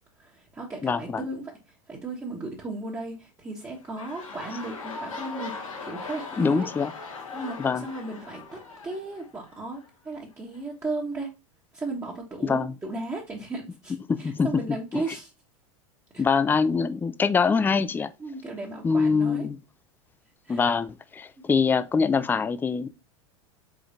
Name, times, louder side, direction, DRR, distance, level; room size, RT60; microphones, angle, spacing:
voice 1, 0.2-1.5 1.9-6.7 7.3-11.3 11.7-15.3 16.1-16.2 18.2-19.5 20.4-20.6, right 2 dB, 15° right, 1.2 m, -35 dB
voice 2, 0.8-1.2 6.4-6.9 7.6-7.9 12.4-12.7 14.1-14.5 14.9-15.0 16.2-18.1 18.8-19.6 20.5-22.9, left 5 dB, 10° left, 0.4 m, -24 dB
sound 1, 3.5-9.9 10.5-10.6, left 4 dB, 85° left, 1.6 m, -40 dB
5.0 x 3.8 x 2.5 m
hypercardioid pair, 95°, 17 cm